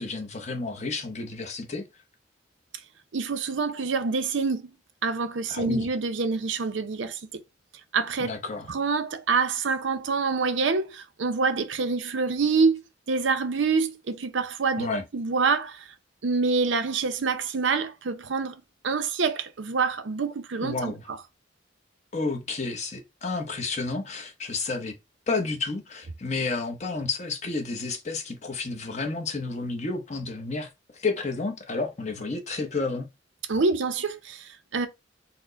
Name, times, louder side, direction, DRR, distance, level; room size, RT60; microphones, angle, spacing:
voice 1, 0.0-1.9 5.5-5.9 8.2-8.7 14.8-15.0 20.6-21.1 22.1-24.9 25.3-33.1, left 3 dB, 40° left, 0.8 m, -31 dB
voice 2, 3.1-4.7 5.0-7.2 7.9-8.3 8.7-12.8 13.1-14.9 15.1-15.8 16.2-21.2 33.5-34.9, right 4 dB, 90° right, 0.6 m, -26 dB
4.2 x 2.1 x 3.8 m
head